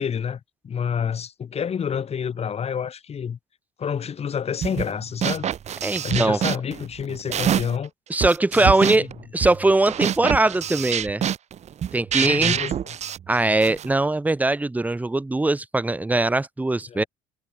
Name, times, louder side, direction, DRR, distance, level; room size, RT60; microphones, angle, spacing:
voice 1, 0.0-3.4 3.8-5.5 6.0-7.9 8.6-9.1 12.2-12.8 16.9-17.1, left 7 dB, 40° left, 6.0 m, -28 dB
sound 1, 4.6-4.9 5.2-7.8 8.2-13.9, right 9 dB, 45° right, 1.1 m, -26 dB
voice 2, 5.8-6.4 8.1-9.1 9.3-11.2 11.9-12.5 13.3-17.0, right 2 dB, 10° right, 1.2 m, -21 dB
supercardioid pair, 95°, 16 cm